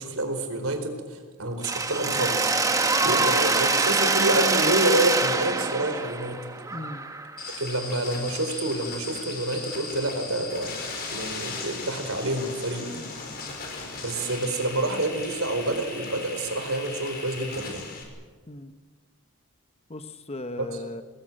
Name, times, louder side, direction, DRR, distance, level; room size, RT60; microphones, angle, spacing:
voice 1, 0.0-2.5 3.0-6.4 7.6-10.8 11.1-12.9 14.0-17.9 20.6-20.7, right 1 dB, 70° right, 6 dB, 4.2 m, -28 dB
Mechanisms, 1.6-7.5, right 3 dB, 15° right, 1.2 m, -24 dB
voice 2, 6.7-7.1 12.9-13.6 18.5-18.7 19.9-21.0, left 1 dB, 30° left, 9 dB, 1.0 m, -38 dB
sound 1, 7.4-18.0, left 4 dB, 45° left, 5.3 m, -37 dB
24.0 x 20.0 x 8.8 m, 1.4 s
head